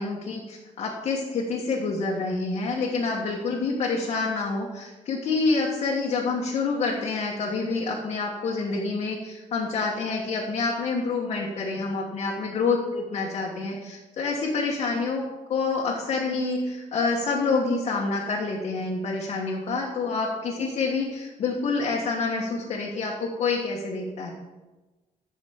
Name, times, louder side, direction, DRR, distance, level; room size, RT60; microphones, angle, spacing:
voice 1, 0.0-15.2 15.5-24.3, left 4 dB, 50° left, -3 dB, 1.4 m, -27 dB
13.5 x 6.3 x 3.6 m, 1.1 s
wide cardioid pair, 175°, 13 cm